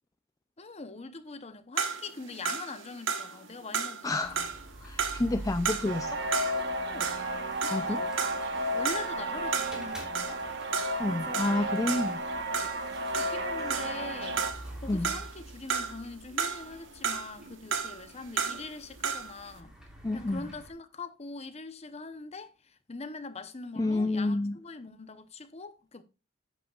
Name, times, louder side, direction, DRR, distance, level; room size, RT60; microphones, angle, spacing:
voice 1, 0.6-4.5 6.8-7.2 7.6-8.1 8.7-10.4 11.1-11.6 12.0-12.2 13.1-14.4 14.8-19.7 20.1-26.0, left 3 dB, 35° left, 0.8 m, -42 dB
sound 1, 1.8-6.7 7.0-14.1 14.4-16.1 16.4-19.4, right 6 dB, 80° right, 1.1 m, -34 dB
voice 2, 4.0-4.4 4.8-6.2 7.7-8.1 11.0-12.2 14.9-15.2 20.0-20.5 23.8-24.6, left 2 dB, 20° left, 0.4 m, -29 dB
sound 2, 4.2-20.7, right 1 dB, 5° right, 3.1 m, -48 dB
sound 3, 5.8-14.5, right 1 dB, 65° right, 1.2 m, -33 dB
11.0 x 8.5 x 2.4 m
head